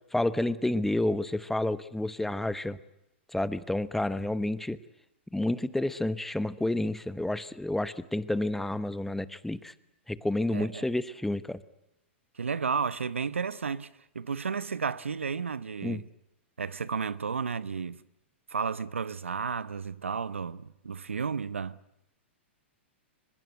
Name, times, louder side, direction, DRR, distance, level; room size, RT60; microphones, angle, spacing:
voice 1, 0.1-2.8 3.3-4.8 5.3-9.7 10.1-11.6 15.8-16.0, left 1 dB, 5° left, 1.0 m, -30 dB
voice 2, 10.5-10.8 12.3-16.1 16.6-18.0 18.5-21.8, right 5 dB, 85° right, 0.9 m, -32 dB
23.5 x 21.0 x 9.2 m
hypercardioid pair, 110°, 7 cm